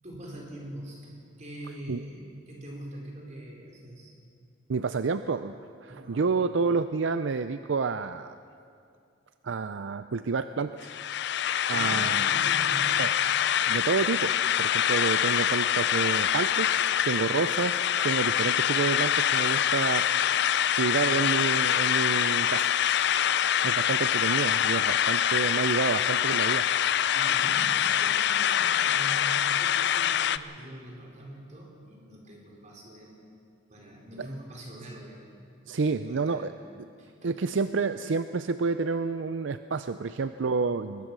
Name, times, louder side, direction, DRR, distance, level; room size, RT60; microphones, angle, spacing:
voice 1, 0.0-4.2 5.9-6.3 11.7-13.0 15.5-15.6 27.1-33.2 33.7-35.2 35.9-36.5 36.7-37.5 40.1-40.2 40.6-40.7, right 1 dB, 40° right, -2 dB, 4.5 m, -43 dB
voice 2, 4.7-8.4 9.4-10.9 11.7-12.2 13.0-14.3 14.6-20.1 20.7-22.7 23.2-26.7 34.2-34.3 35.7-36.5 37.2-41.1, right 4 dB, 70° right, 11 dB, 0.5 m, -29 dB
sound 1, 10.8-30.4, left 10 dB, 60° left, 0.5 m, -25 dB
21.0 x 21.0 x 6.1 m, 2.4 s
head